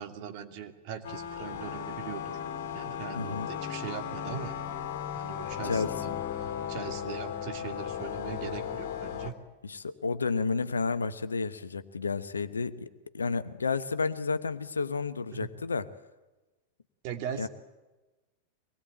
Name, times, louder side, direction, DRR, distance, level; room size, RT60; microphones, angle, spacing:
voice 1, 0.0-2.2 2.7-4.5 5.2-6.1 6.4-9.3 17.0-17.5, right 8 dB, 45° right, 6 dB, 2.7 m, -40 dB
sound 1, 1.0-9.3, left 9 dB, 55° left, 2.6 m, -36 dB
voice 2, 3.2-3.5 5.6-6.1 9.6-15.9 17.4-17.5, left 4 dB, 75° left, 13 dB, 1.1 m, -31 dB
24.5 x 20.5 x 9.1 m, 1.1 s
figure-of-eight pair, 90°, 0 cm